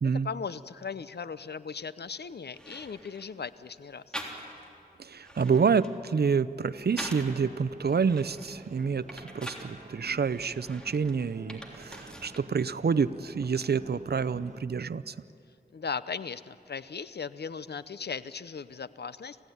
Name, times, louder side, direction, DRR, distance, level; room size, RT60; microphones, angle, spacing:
voice 1, 0.2-4.0 15.7-19.4, left 5 dB, 80° left, 14 dB, 0.7 m, -37 dB
sound 1, 2.1-2.2 2.5-3.3 4.1-4.8 5.1-7.4 7.9-9.7 10.3-12.5 12.8-13.6, equal, 5° left, 3.5 m, -44 dB
voice 2, 5.0-15.1, right 5 dB, 75° right, 15 dB, 0.6 m, -28 dB
sound 2, 6.7-14.6, right 2 dB, 45° right, 1.5 m, -50 dB
27.0 x 16.5 x 9.4 m, 2.6 s
wide cardioid pair, 60°, 17 cm